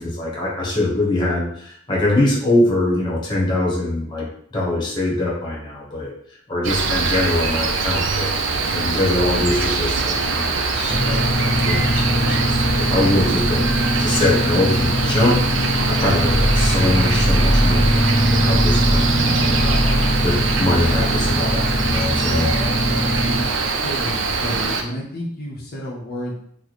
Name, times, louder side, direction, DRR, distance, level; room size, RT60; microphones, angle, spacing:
voice 1, 0.0-6.1 6.5-8.3 8.7-15.4 15.8-22.5, left 1 dB, 25° left, -4 dB, 0.9 m, -23 dB
Cricket, 6.6-24.8, right 4 dB, 70° right, 0.4 m, -23 dB
sound 1, 10.9-23.4, equal, 5° left, 0.5 m, -20 dB
voice 2, 23.8-26.4, equal, 50° left, -4 dB, 0.7 m, -30 dB
3.0 x 2.1 x 4.0 m, 0.66 s
head